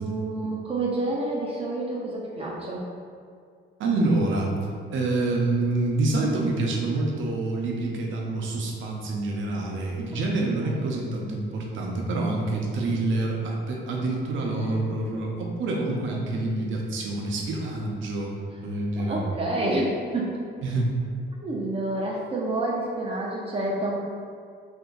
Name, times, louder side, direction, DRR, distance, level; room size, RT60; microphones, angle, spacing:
voice 1, 0.0-2.9 10.6-10.9 14.6-14.9 19.0-20.4 21.4-24.0, right 2 dB, 30° right, -4 dB, 0.5 m, -29 dB
voice 2, 3.8-4.6 4.9-18.3 18.6-19.2 20.6-20.9, right 2 dB, 75° right, -1 dB, 0.7 m, -27 dB
2.8 x 2.6 x 3.8 m, 2.2 s
cardioid pair, 90°, 20 cm